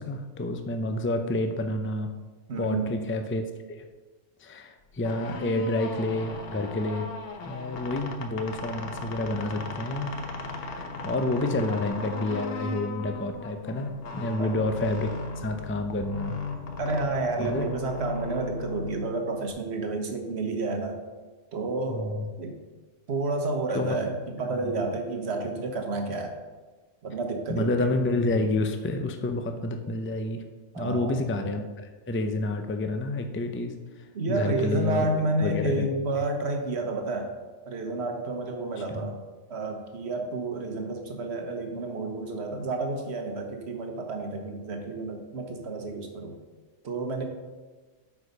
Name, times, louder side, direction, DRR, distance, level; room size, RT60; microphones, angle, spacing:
voice 1, 0.0-2.1 2.6-3.4 3.8-3.9 4.4-7.1 7.4-10.1 10.6-16.4 17.4-17.6 21.9-22.3 23.7-23.9 24.5-24.7 27.5-30.4 30.8-33.7 34.3-35.1 35.4-35.9 38.9-39.1, left 2 dB, 20° left, 6 dB, 0.3 m, -29 dB
voice 2, 2.5-3.0 14.4-14.6 16.8-21.0 21.5-22.5 23.1-26.4 27.0-27.9 30.7-31.2 34.1-37.3 37.7-39.2 39.5-46.4 46.8-47.2, right 2 dB, 60° right, 4 dB, 1.3 m, -30 dB
sound 1, 4.9-19.5, left 3 dB, 55° left, 1.0 m, -37 dB
8.3 x 4.9 x 5.3 m, 1.3 s
omnidirectional pair, 1.3 m